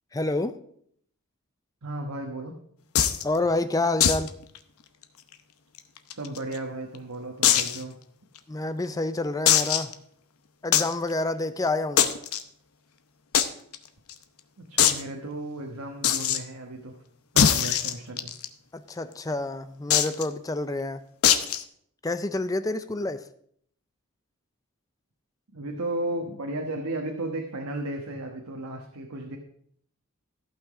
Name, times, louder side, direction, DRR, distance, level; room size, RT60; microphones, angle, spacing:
voice 1, 0.1-0.6 3.2-4.3 8.5-9.9 10.6-12.1 18.7-21.0 22.0-23.2, left 2 dB, 15° left, 12 dB, 0.4 m, -28 dB
voice 2, 1.8-2.5 6.1-7.9 14.6-16.9 17.3-18.3 25.5-29.4, right 1 dB, 85° right, 2 dB, 1.2 m, -34 dB
sound 1, 3.0-3.2 4.0-4.3 4.6-4.7 5.0-5.1 5.8-6.6 7.4-7.8 8.4-8.5 9.5-9.9 10.7-10.9 12.0-12.4 13.3-13.5 13.7-13.8 14.1-14.2 14.8-15.0 16.0-16.4 17.4-18.5 19.9-20.2 21.2-21.6, left 9 dB, 80° left, 0.8 m, -21 dB
14.0 x 5.9 x 4.8 m, 0.67 s
head